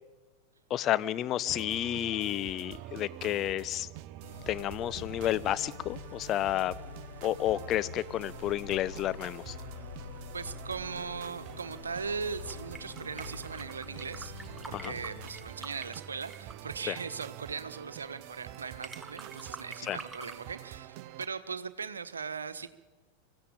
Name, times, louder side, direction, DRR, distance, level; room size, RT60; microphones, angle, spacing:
voice 1, 0.7-3.9 4.5-6.8 7.2-9.6 14.7-14.9 16.9-17.0 19.8-20.0, left 12 dB, 35° left, 17 dB, 0.9 m, -31 dB
sound 1, 1.5-21.3, right 13 dB, 45° right, 0.9 m, -47 dB
sound 2, 4.2-16.1, left 7 dB, 65° left, 1.4 m, -47 dB
voice 2, 10.3-22.7, right 5 dB, 75° right, 13 dB, 1.3 m, -39 dB
sound 3, 10.8-20.4, right 3 dB, 10° right, 1.9 m, -50 dB
25.0 x 15.5 x 9.0 m, 1.2 s
figure-of-eight pair, 90°, 0 cm